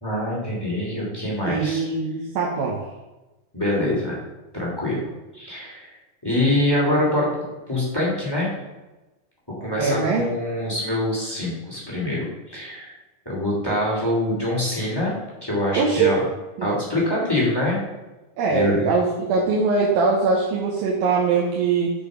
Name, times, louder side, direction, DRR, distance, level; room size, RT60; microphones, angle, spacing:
voice 1, 0.0-1.8 3.5-4.2 4.5-5.0 5.3-5.9 6.2-7.3 7.7-8.5 9.6-12.2 12.5-12.9 13.2-15.1 15.4-16.2 16.6-17.9 18.5-18.9, left 1 dB, 10° left, -5 dB, 2.0 m, -24 dB
voice 2, 1.4-2.8 9.8-10.3 15.7-16.2 16.6-16.7 18.4-21.9, right 4 dB, 75° right, -3 dB, 2.9 m, -22 dB
7.1 x 6.9 x 5.2 m, 1.1 s
omnidirectional pair, 4.2 m